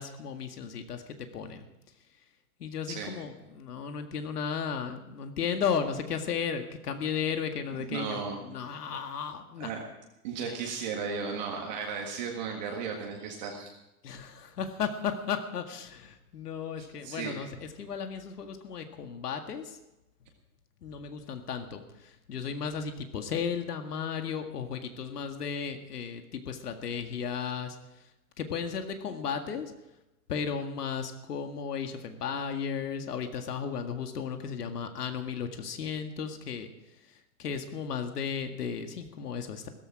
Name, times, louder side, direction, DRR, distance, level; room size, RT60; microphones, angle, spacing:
voice 1, 0.0-1.6 2.6-9.7 10.4-10.6 14.0-19.8 20.8-27.8 28.4-29.7 30.3-36.7 37.1-39.7, left 7 dB, 80° left, 6 dB, 2.0 m, -35 dB
voice 2, 7.8-8.4 9.6-9.8 10.2-13.7 16.8-17.4, right 5 dB, 30° right, 0 dB, 1.7 m, -35 dB
17.0 x 14.5 x 4.9 m, 0.95 s
hypercardioid pair, 180°, 46 cm